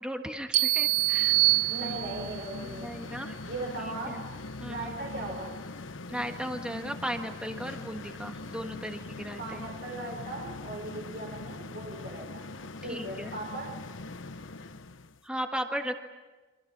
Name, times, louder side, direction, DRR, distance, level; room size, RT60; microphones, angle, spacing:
voice 1, 0.0-1.4 2.6-3.3 4.1-4.2 4.6-4.9 6.1-9.6 12.9-13.3 15.2-16.0, equal, 5° right, 4 dB, 1.6 m, -36 dB
sound 1, 0.5-2.4, right 22 dB, 80° right, 1.0 m, -25 dB
sound 2, 0.6-15.2, left 2 dB, 80° left, 1.0 m, -42 dB
voice 2, 1.7-3.0 3.4-4.2 4.7-5.5 9.4-12.5 12.8-13.7, right 2 dB, 60° right, 0 dB, 5.2 m, -38 dB
29.5 x 25.0 x 6.1 m, 1.2 s
head